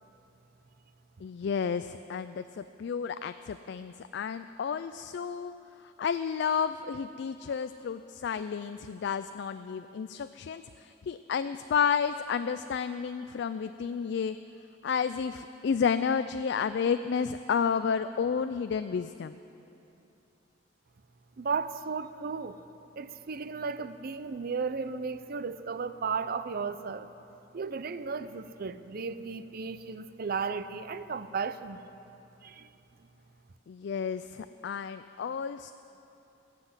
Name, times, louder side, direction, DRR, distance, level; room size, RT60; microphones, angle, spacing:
voice 1, 1.2-5.5 5.8-14.4 14.8-19.4 33.7-35.7, left 6 dB, 60° left, 11 dB, 0.3 m, -31 dB
voice 2, 21.4-22.6 23.0-27.1 27.5-31.8 32.4-32.7, right 5 dB, 50° right, 13 dB, 0.5 m, -34 dB
20.0 x 7.7 x 8.1 m, 2.9 s
head